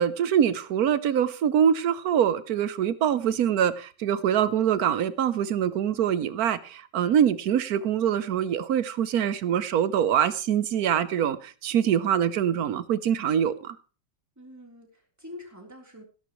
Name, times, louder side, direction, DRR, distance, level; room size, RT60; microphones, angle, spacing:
voice 1, 0.0-13.8, right 9 dB, 60° right, 1.2 m, -24 dB
voice 2, 14.4-16.0, left 2 dB, 10° right, 3.5 m, -45 dB
17.0 x 11.5 x 3.1 m
omnidirectional pair, 1.9 m